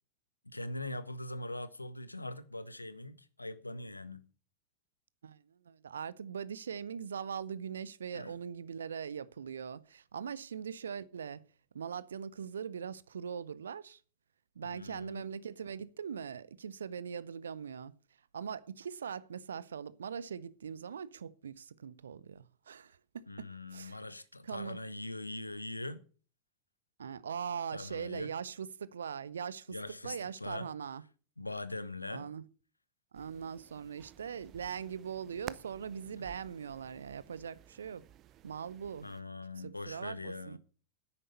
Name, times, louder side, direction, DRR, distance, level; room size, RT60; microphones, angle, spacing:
voice 1, 0.5-4.3 8.1-8.3 14.6-15.3 23.3-26.0 27.7-28.3 29.7-30.7 31.4-32.3 36.2-36.3 39.0-40.6, left 2 dB, 85° left, 0.9 m, -42 dB
voice 2, 5.2-11.4 11.7-14.0 14.6-17.9 18.3-24.0 24.4-24.8 27.0-29.7 30.0-31.0 32.1-32.4 33.1-38.1 38.4-39.1 39.6-40.6, right 7 dB, 70° right, 0.7 m, -41 dB
sound 1, 33.1-39.2, right 12 dB, 35° right, 0.6 m, -53 dB
10.0 x 8.9 x 6.8 m
figure-of-eight pair, 90°, 0 cm